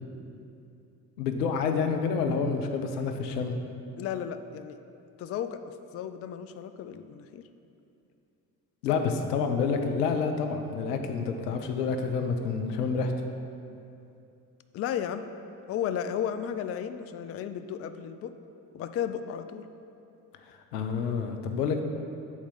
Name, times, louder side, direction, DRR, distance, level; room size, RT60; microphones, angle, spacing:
voice 1, 1.2-3.6 8.8-13.1 20.7-21.8, left 5 dB, 85° left, 5 dB, 0.6 m, -28 dB
voice 2, 4.0-4.8 5.2-7.4 8.9-9.0 14.7-15.2 15.7-18.3 18.7-19.6, left 9 dB, 35° left, 10 dB, 0.4 m, -34 dB
7.2 x 4.2 x 5.8 m, 2.7 s
hypercardioid pair, 45°, 46 cm